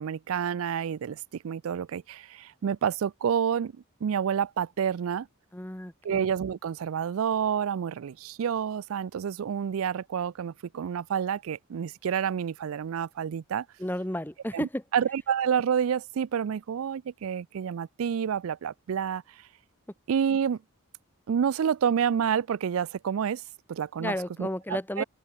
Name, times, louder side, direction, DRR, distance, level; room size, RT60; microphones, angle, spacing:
voice 1, 0.0-3.7 4.0-5.3 6.0-13.7 14.5-14.7 14.9-19.5 20.1-20.6 21.3-23.4 23.7-24.1 24.4-25.0, right 7 dB, 70° right, 0.4 m, -29 dB
voice 2, 5.5-6.3 13.8-14.8 24.0-25.0, left 1 dB, 10° left, 1.0 m, -33 dB
open air
head